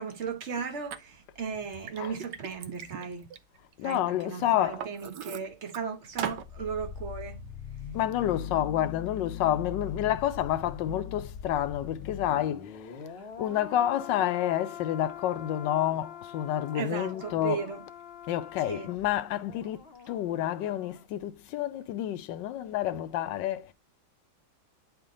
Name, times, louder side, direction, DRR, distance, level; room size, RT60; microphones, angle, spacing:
voice 1, 0.0-3.3 3.8-7.4 16.7-17.8 18.6-18.9, right 6 dB, 45° right, 0.9 m, -36 dB
Liquid, 0.9-1.0 1.5-4.0 4.4-5.8 6.2-6.5, right 9 dB, 75° right, 1.1 m, -39 dB
voice 2, 3.8-4.9 7.9-13.1 13.4-17.6 18.3-23.7, left 12 dB, 75° left, 1.1 m, -29 dB
sound 1, 6.1-21.0 21.3-21.5, left 7 dB, 35° left, 1.0 m, -42 dB
10.0 x 3.5 x 3.7 m
omnidirectional pair, 2.3 m